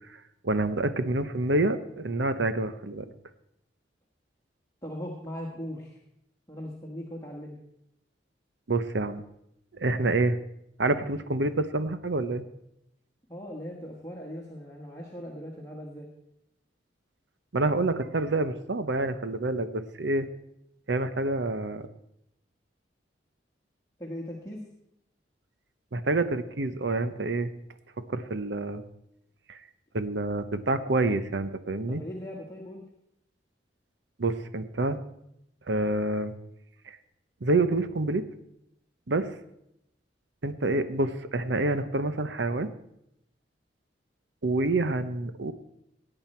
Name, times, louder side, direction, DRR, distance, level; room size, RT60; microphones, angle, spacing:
voice 1, 0.1-3.1 8.7-9.2 9.7-10.4 10.8-12.4 17.5-20.3 20.9-21.9 25.9-27.5 28.1-28.8 29.5-29.6 29.9-32.0 34.2-35.0 35.7-36.3 36.9-37.0 37.4-38.2 39.1-39.3 40.4-42.7 44.4-45.5, right 2 dB, 70° right, 11 dB, 0.8 m, -27 dB
voice 2, 4.8-6.0 6.5-7.6 13.3-16.1 24.0-24.7 31.9-32.8, equal, 20° left, -3 dB, 1.5 m, -39 dB
17.5 x 8.9 x 4.4 m, 0.79 s
head